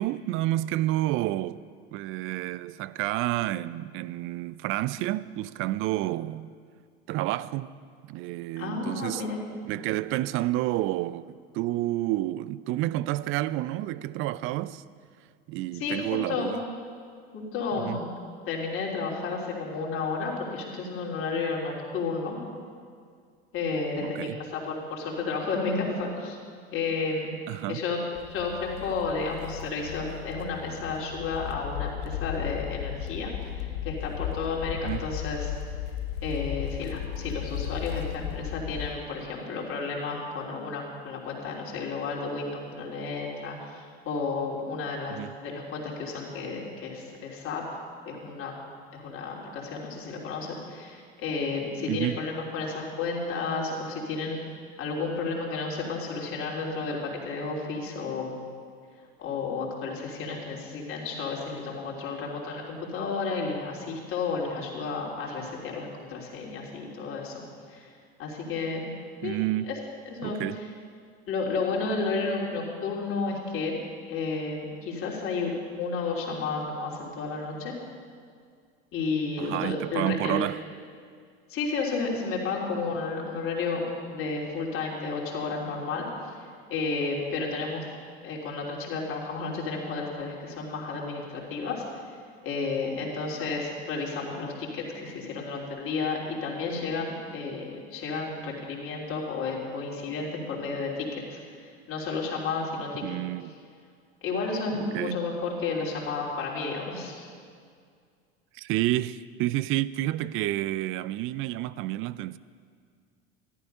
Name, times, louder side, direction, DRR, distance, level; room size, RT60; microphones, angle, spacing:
voice 1, 0.0-1.6 1.9-6.5 7.1-7.7 8.0-9.3 9.7-14.8 15.5-16.6 17.7-18.0 24.0-24.4 27.5-27.8 34.8-35.1 45.1-45.4 51.9-52.2 69.2-69.7 70.2-70.6 79.4-80.6 103.0-103.6 104.8-105.2 108.5-112.4, right 16 dB, 40° right, 0.4 m, -29 dB
voice 2, 8.6-9.4 15.7-16.5 17.3-18.1 18.5-22.4 23.5-26.4 26.7-27.4 27.7-28.0 28.3-35.5 36.2-48.5 48.9-54.4 54.8-58.4 59.2-67.4 67.7-67.9 68.2-68.9 69.2-69.4 69.7-69.8 70.0-70.7 71.3-73.8 74.1-77.8 78.9-80.5 81.5-83.8 84.1-86.0 86.7-87.8 88.2-92.0 92.4-103.0 104.2-107.3, left 4 dB, 40° left, 3.4 m, -32 dB
sound 1, 28.2-38.9, left 10 dB, 70° left, 0.8 m, -35 dB
14.0 x 12.0 x 5.5 m
figure-of-eight pair, 75°, 32 cm